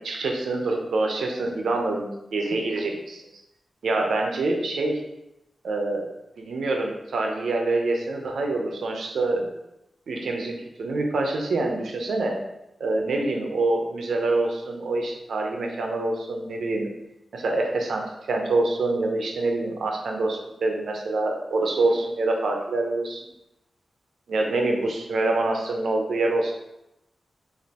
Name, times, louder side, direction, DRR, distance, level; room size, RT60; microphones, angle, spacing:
voice 1, 0.0-3.2 3.8-5.0 5.6-6.1 6.4-9.5 10.1-12.4 12.8-16.9 17.3-23.2 24.3-26.5, right 2 dB, 85° right, 2 dB, 0.7 m, -26 dB
5.1 x 2.6 x 2.9 m, 0.90 s
wide cardioid pair, 105°, 0 cm